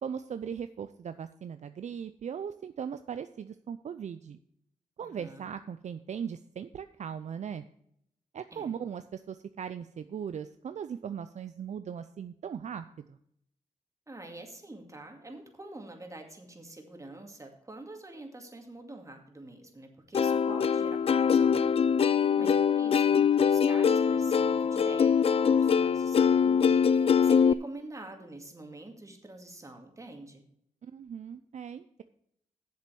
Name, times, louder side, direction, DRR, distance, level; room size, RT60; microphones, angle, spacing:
voice 1, 0.0-4.4 5.0-7.7 8.3-13.2 22.2-22.6 30.8-32.0, right 7 dB, 60° right, 11 dB, 0.5 m, -39 dB
voice 2, 5.0-5.5 8.5-8.7 14.1-30.4, right 2 dB, 25° right, 3 dB, 2.3 m, -47 dB
Plucked string instrument, 20.1-27.5, left 7 dB, 45° left, 0.3 m, -23 dB
7.6 x 7.4 x 6.9 m, 0.72 s
cardioid pair, 70°, 14 cm